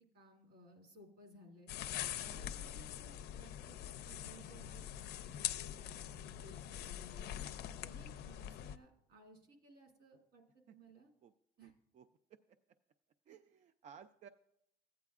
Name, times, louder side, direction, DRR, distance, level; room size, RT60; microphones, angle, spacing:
voice 1, 0.1-1.7 2.2-7.3 7.8-11.1 11.6-11.7, right 1 dB, 75° right, 2 dB, 2.5 m, -60 dB
sound 1, 1.7-8.8, left 11 dB, 75° left, 0.4 m, -44 dB
voice 2, 2.3-2.8 7.7-7.9 10.7-10.8 11.2-11.3 11.6-12.4 13.3-14.3, right 8 dB, 45° right, 9 dB, 0.4 m, -59 dB
14.5 x 9.0 x 2.4 m, 0.78 s
cardioid pair, 110°, 17 cm